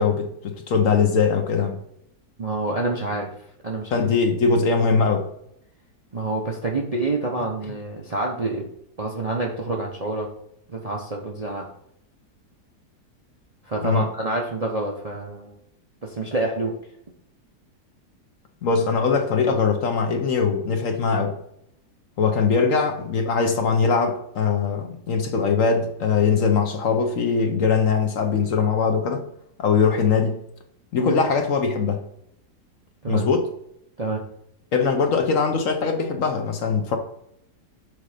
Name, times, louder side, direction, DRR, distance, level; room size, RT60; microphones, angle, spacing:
voice 1, 0.0-1.8 3.9-5.3 13.8-14.1 18.6-21.4 22.2-29.2 29.6-30.4 30.9-32.0 33.1-33.5 34.7-37.0, left 5 dB, 60° left, 1.0 m, -21 dB
voice 2, 2.4-3.3 3.6-4.1 6.1-8.7 9.0-10.3 10.7-11.7 13.6-15.6 16.0-16.7 31.0-31.2 33.0-33.2 34.0-34.2, right 2 dB, 35° right, 0.6 m, -27 dB
6.5 x 3.8 x 4.9 m
omnidirectional pair, 1.8 m